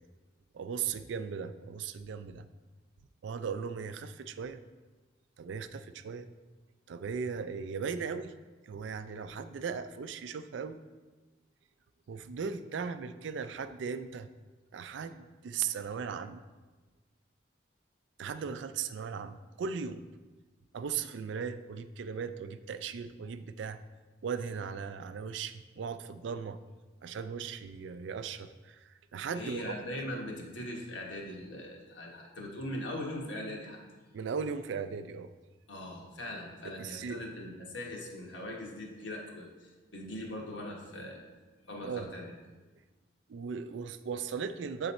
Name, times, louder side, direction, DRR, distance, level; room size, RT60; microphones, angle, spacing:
voice 1, 0.5-2.5 3.2-4.6 5.4-6.3 6.9-8.3 8.7-10.8 12.1-14.3 14.7-16.4 18.2-20.0 20.7-23.8 24.2-26.6 27.0-28.8 29.1-29.7 34.1-35.3 36.8-37.2 41.8-42.1 43.3-44.9, right 6 dB, 75° right, 11 dB, 0.4 m, -37 dB
voice 2, 29.3-33.8 35.7-41.2 41.6-42.3, left 1 dB, 85° left, -1 dB, 1.3 m, -40 dB
7.8 x 3.9 x 4.2 m, 1.2 s
head